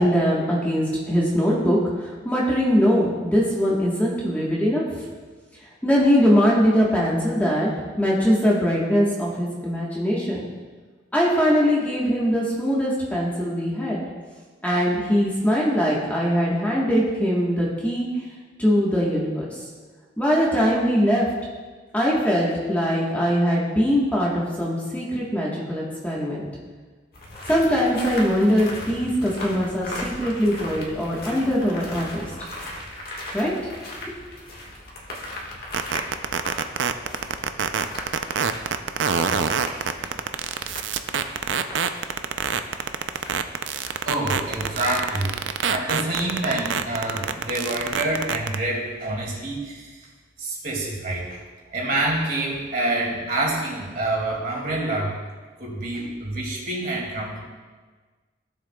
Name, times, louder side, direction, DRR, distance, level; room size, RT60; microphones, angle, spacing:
voice 1, 0.0-5.0 5.8-7.7 8.0-10.4 11.1-14.0 14.6-18.1 18.6-19.7 20.2-21.2 21.9-26.5 27.5-32.3 33.3-33.5, equal, 10° left, -5 dB, 1.2 m, -21 dB
sound 1, 27.1-45.5, left 1 dB, 55° left, 1.6 m, -38 dB
sound 2, 35.7-48.6, right 7 dB, 80° right, 0.5 m, -24 dB
voice 2, 44.0-45.3 45.7-49.9 50.4-51.4 51.7-55.2 55.6-57.4, right 2 dB, 50° right, -2 dB, 2.2 m, -27 dB
15.5 x 7.3 x 2.3 m, 1.4 s
head